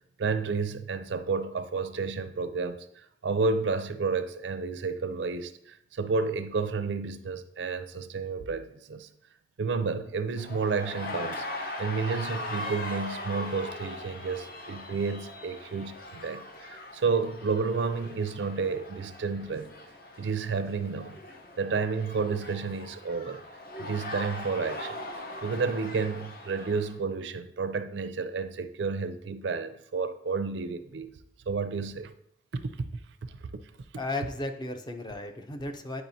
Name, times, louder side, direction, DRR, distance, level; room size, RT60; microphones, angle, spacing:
voice 1, 0.2-9.1 9.6-11.4 11.8-19.7 20.2-21.2 21.6-23.4 23.8-25.0 25.4-31.1 31.5-32.1 32.5-32.9 33.2-33.3, right 4 dB, 80° right, 0.4 m, -31 dB
sound 1, 10.4-27.0, left 1 dB, 55° left, 0.8 m, -40 dB
voice 2, 34.0-36.0, left 2 dB, 25° left, 0.5 m, -35 dB
8.7 x 4.8 x 2.7 m
head